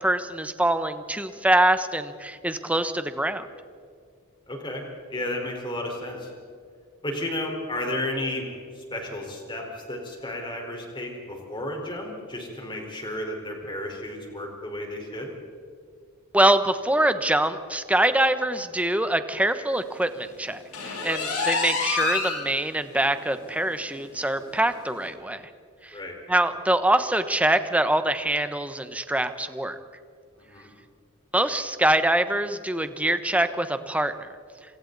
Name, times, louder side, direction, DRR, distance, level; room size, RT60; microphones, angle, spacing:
voice 1, 0.0-3.5 16.3-25.4 25.8-25.9 26.3-29.8 31.3-34.3, right 1 dB, 5° right, 10 dB, 1.0 m, -24 dB
voice 2, 4.5-4.8 5.1-6.3 7.0-15.3 25.9-26.2 30.4-30.7, left 1 dB, 20° left, 1 dB, 4.4 m, -33 dB
sound 1, 20.7-22.4 22.9-23.0 23.4-23.5 23.9-24.0 25.0-25.1, left 4 dB, 90° left, 7.7 m, -27 dB
28.5 x 26.5 x 4.1 m, 2.2 s
head